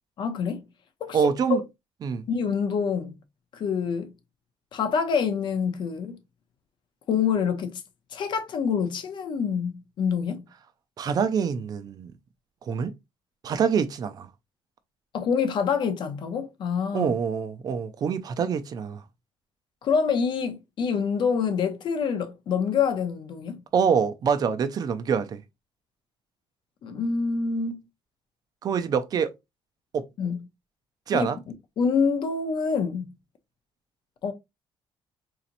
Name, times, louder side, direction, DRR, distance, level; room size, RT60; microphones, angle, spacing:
voice 1, 0.2-0.6 1.0-1.6 2.3-3.1 3.5-4.1 4.7-6.2 7.1-7.8 8.1-10.4 15.1-17.1 19.8-23.6 26.8-27.8 30.2-30.4 31.1-31.3 31.8-33.1 34.2-34.3, left 6 dB, 50° left, 0.6 m, -26 dB
voice 2, 1.1-1.6 2.0-2.2 11.0-12.1 12.6-12.9 13.4-14.3 16.9-19.0 23.7-25.4 28.6-29.3 29.9-30.0 31.1-31.4, right 6 dB, 40° right, 0.5 m, -25 dB
4.0 x 2.9 x 2.5 m
cardioid pair, 155°, 10 cm